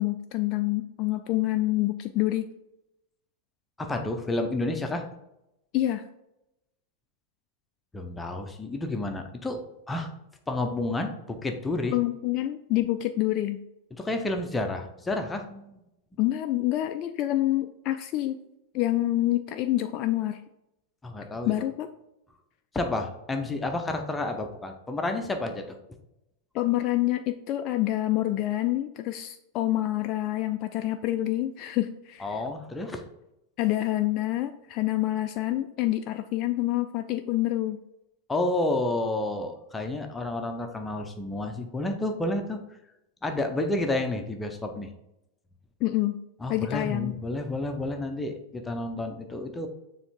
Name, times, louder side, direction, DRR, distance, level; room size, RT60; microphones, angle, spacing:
voice 1, 0.0-2.5 5.7-6.1 11.9-13.6 16.2-18.4 18.7-20.4 21.5-21.9 26.5-32.4 33.6-37.8 45.8-46.2 46.5-47.1, left 15 dB, 40° left, 7 dB, 0.3 m, -27 dB
voice 2, 3.8-5.0 7.9-9.6 9.9-10.1 10.5-12.0 13.9-15.8 21.0-21.5 22.7-25.8 32.2-33.0 38.3-42.6 43.2-44.9 46.4-49.7, left 2 dB, 10° left, 5 dB, 0.7 m, -30 dB
7.0 x 3.2 x 4.3 m, 0.88 s
figure-of-eight pair, 90°, 0 cm